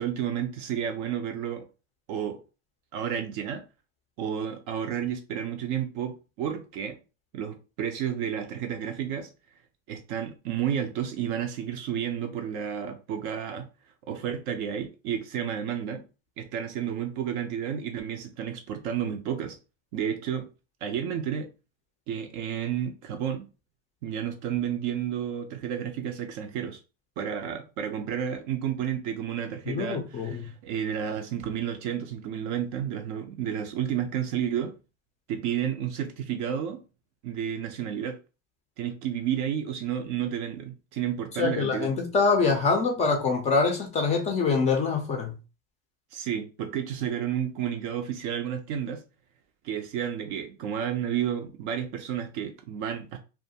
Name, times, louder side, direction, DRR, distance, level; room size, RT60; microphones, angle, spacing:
voice 1, 0.0-1.6 2.1-2.4 2.9-3.6 4.2-7.0 7.3-9.3 9.9-13.7 14.1-16.0 16.4-19.6 19.9-20.5 20.8-21.5 22.1-23.4 24.0-26.8 27.2-34.8 35.3-36.8 37.2-38.2 38.8-41.9 46.1-49.0 49.6-53.2, right 9 dB, 40° right, 0.4 m, -31 dB
voice 2, 29.7-30.5 41.4-45.3, left 4 dB, 20° left, 0.4 m, -25 dB
2.4 x 2.2 x 2.7 m
hypercardioid pair, 120°, 38 cm